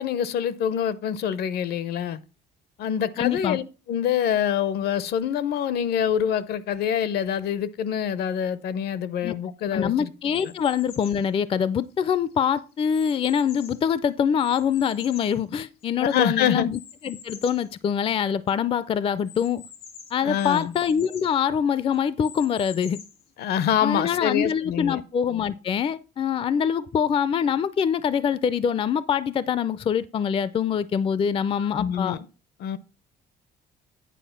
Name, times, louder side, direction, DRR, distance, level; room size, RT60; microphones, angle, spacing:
voice 1, 0.0-2.2 2.8-3.6 3.9-10.1 10.4-10.5 16.0-16.7 20.2-20.7 23.4-25.0 31.6-32.3 32.6-32.8, left 9 dB, 70° left, 0.7 m, -25 dB
voice 2, 3.2-3.6 9.2-9.3 9.7-19.6 20.1-23.0 23.8-32.2, left 7 dB, 35° left, 0.4 m, -24 dB
sound 1, 10.3-11.3 11.9-13.9 14.4-16.1 16.7-17.7 18.1-18.2 18.5-18.6 19.3-21.3 21.9-23.3, left 7 dB, 90° left, 1.7 m, -46 dB
9.2 x 4.7 x 5.7 m
cardioid pair, 110°, 17 cm